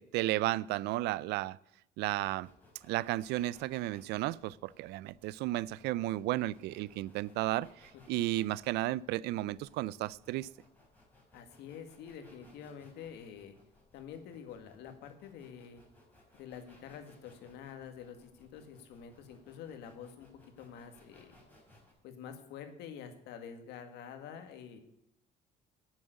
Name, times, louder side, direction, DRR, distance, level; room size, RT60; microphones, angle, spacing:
voice 1, 0.0-1.6 2.0-2.5 2.9-10.5, right 16 dB, 85° right, 0.4 m, -33 dB
sound 1, 2.2-21.9, left 1 dB, 10° left, 5.1 m, -63 dB
voice 2, 11.3-13.5 13.9-15.8 16.3-20.3 20.6-21.4 22.0-24.8, left 7 dB, 85° left, 1.9 m, -47 dB
10.5 x 7.3 x 8.0 m
cardioid pair, 110°, 17 cm